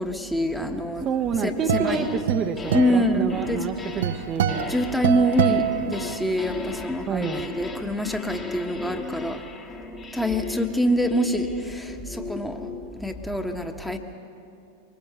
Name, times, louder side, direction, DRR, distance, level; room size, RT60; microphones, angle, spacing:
voice 1, 0.0-1.1 1.4-2.0 2.7-3.7 4.7-9.4 10.1-12.6 13.0-14.0, equal, 5° left, 5 dB, 1.4 m, -25 dB
voice 2, 1.0-4.8 7.1-7.5, right 6 dB, 30° right, 3 dB, 0.9 m, -28 dB
sound 1, 1.1-6.5, right 10 dB, 60° right, 0.8 m, -27 dB
sound 2, 1.6-2.3 2.6-13.0, left 4 dB, 20° left, 1.6 m, -37 dB
24.0 x 19.5 x 6.9 m, 2.7 s
figure-of-eight pair, 90°, 0 cm